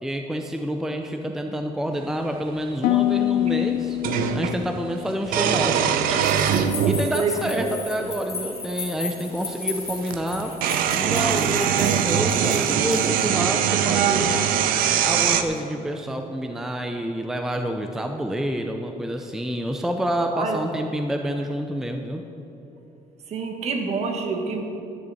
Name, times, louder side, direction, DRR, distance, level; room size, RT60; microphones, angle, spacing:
voice 1, 0.0-4.0 4.3-5.8 6.9-10.5 10.9-14.4 15.0-22.2, equal, 5° right, 4 dB, 0.5 m, -28 dB
sound 1, 2.3-2.4 4.0-4.6 5.3-7.1 8.0-8.1 9.6-9.7 10.0-15.4, right 8 dB, 80° right, 0.7 m, -22 dB
Harp, 2.8-6.9 7.2-7.8 8.3-8.6, left 14 dB, 85° left, 0.4 m, -27 dB
sound 2, 6.2-13.2, left 3 dB, 20° left, 2.0 m, -35 dB
voice 2, 7.1-7.8 20.3-20.6 23.3-24.6, right 4 dB, 50° right, 4 dB, 1.5 m, -27 dB
11.0 x 6.6 x 8.3 m, 2.9 s
cardioid pair, 150°, 14 cm